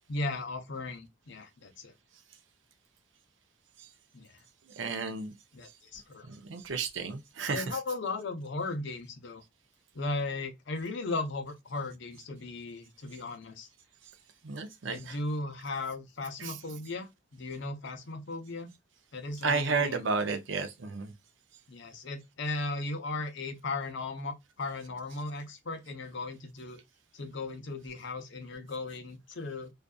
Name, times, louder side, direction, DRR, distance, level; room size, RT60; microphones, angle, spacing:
voice 1, 0.1-1.9 4.1-4.3 5.5-6.3 7.5-9.4 9.9-13.7 14.9-18.7 19.1-20.1 21.7-26.8 27.1-29.7, left 3 dB, 60° left, 0.6 m, -37 dB
voice 2, 4.8-5.3 6.3-7.6 14.4-15.2 16.4-16.5 19.4-21.1, right 4 dB, 60° right, 0.5 m, -32 dB
2.6 x 2.3 x 2.2 m
head